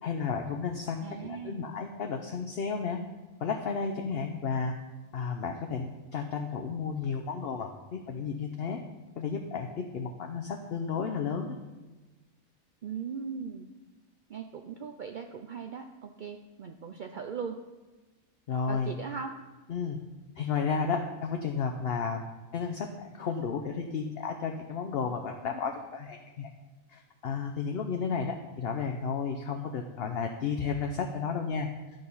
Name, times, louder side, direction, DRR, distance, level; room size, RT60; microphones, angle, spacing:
voice 1, 0.0-3.0 3.4-4.7 5.1-8.8 9.2-11.6 18.5-18.9 19.7-20.0 20.4-22.2 22.5-26.5 26.9-31.7, left 5 dB, 55° left, 4 dB, 0.8 m, -32 dB
voice 2, 1.0-1.7 12.8-13.7 14.3-17.6 18.7-19.3, right 6 dB, 70° right, 5 dB, 0.4 m, -39 dB
10.5 x 6.6 x 5.5 m, 1.2 s
omnidirectional pair, 1.5 m